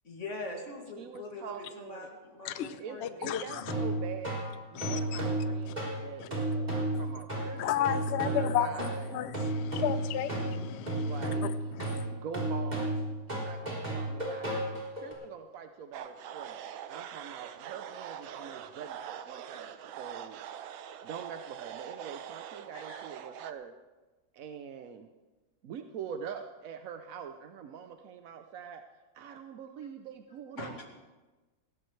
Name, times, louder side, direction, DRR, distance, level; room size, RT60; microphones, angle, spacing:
voice 1, 0.0-3.3 22.7-23.0 30.6-30.8, left 2 dB, 40° left, 2.6 m, -42 dB
voice 2, 1.0-2.1 2.8-7.9 8.2-9.1 11.0-11.5 12.1-14.7 14.9-20.4 21.0-23.7 24.3-25.1 25.6-28.8 29.1-30.8, right 7 dB, 65° right, 0.9 m, -44 dB
voice 3, 2.4-3.6 4.8-5.2 5.7-5.8 6.2-6.3 7.6-11.3 11.8-12.1, left 10 dB, 75° left, 0.6 m, -33 dB
sound 1, 3.6-15.1, right 1 dB, 20° right, 3.8 m, -33 dB
sound 2, 15.9-23.5, right 9 dB, 90° right, 1.5 m, -43 dB
19.0 x 16.0 x 3.3 m
omnidirectional pair, 2.1 m